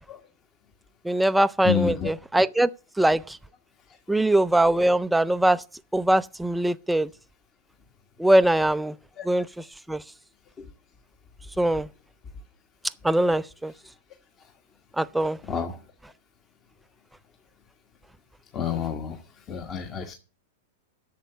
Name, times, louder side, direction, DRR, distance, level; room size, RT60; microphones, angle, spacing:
voice 1, 1.1-2.7 3.0-3.2 4.1-5.6 5.9-7.1 8.2-8.9 9.3-9.5 9.9-10.0 11.6-11.9 13.0-13.7 15.0-15.4, right 1 dB, 5° right, 0.4 m, -21 dB
voice 2, 1.6-2.1 9.2-9.3 10.6-10.7 15.5-15.8 18.5-19.2 19.5-20.1, left 7 dB, 30° left, 1.3 m, -29 dB
8.3 x 6.6 x 8.0 m
hypercardioid pair, 125°, 0 cm